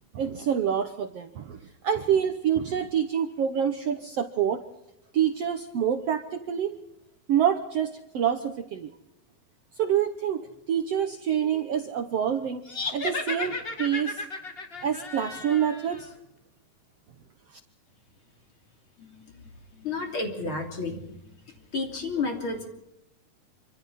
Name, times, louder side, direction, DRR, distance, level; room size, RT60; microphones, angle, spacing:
voice 1, 0.1-4.6 5.1-6.8 7.3-8.9 9.8-14.2 14.8-16.1 17.5-17.6, right 9 dB, 75° right, 7 dB, 1.4 m, -27 dB
sound 1, 12.7-16.1, left 3 dB, 75° left, 0.5 m, -34 dB
voice 2, 19.0-19.5 19.8-21.2 21.7-22.7, left 3 dB, 35° left, 3 dB, 3.5 m, -32 dB
26.5 x 25.5 x 4.2 m, 0.83 s
omnidirectional pair, 4.3 m